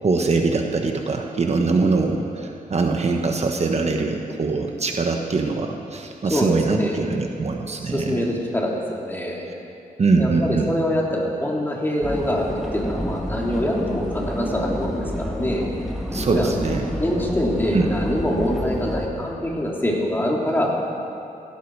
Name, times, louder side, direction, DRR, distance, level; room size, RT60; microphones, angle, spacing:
voice 1, 0.0-8.2 10.0-10.7 16.1-16.8 17.7-17.9, right 3 dB, 50° right, 3 dB, 1.3 m, -22 dB
voice 2, 6.3-7.0 7.8-9.4 10.2-15.7 16.2-16.6 17.0-20.8, equal, 15° left, -3 dB, 3.1 m, -24 dB
sound 1, 12.0-19.1, equal, ahead, 2.3 m, -29 dB
17.0 x 16.5 x 4.8 m, 2.6 s
wide cardioid pair, 100°, 14 cm